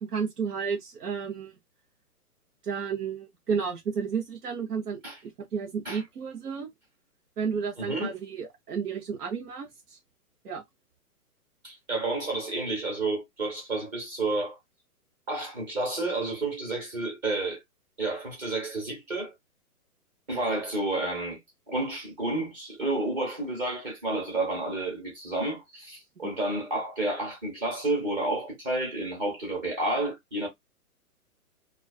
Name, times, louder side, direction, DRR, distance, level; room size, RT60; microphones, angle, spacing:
voice 1, 0.0-1.5 2.6-6.7 7.4-10.0 10.4-10.6, right 6 dB, 90° right, 0.9 m, -32 dB
voice 2, 7.8-8.1 11.6-14.6 15.3-17.6 18.0-19.3 20.3-21.4 21.7-30.5, right 2 dB, 15° right, 0.7 m, -30 dB
2.4 x 2.3 x 2.3 m
hypercardioid pair, 155°, 45 cm